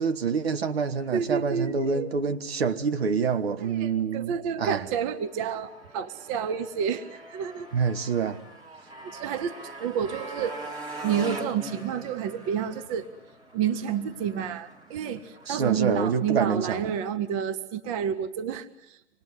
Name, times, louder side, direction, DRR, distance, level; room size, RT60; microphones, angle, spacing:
voice 1, 0.0-4.9 7.7-8.4 15.5-16.9, right 5 dB, 60° right, 1.6 m, -27 dB
voice 2, 1.1-2.1 3.6-7.7 9.0-10.6 11.0-13.1 13.5-19.0, right 8 dB, 30° right, 1.0 m, -30 dB
Motorcycle, 5.1-17.2, right 1 dB, 10° right, 2.0 m, -43 dB
26.0 x 20.0 x 9.6 m
figure-of-eight pair, 115°, 34 cm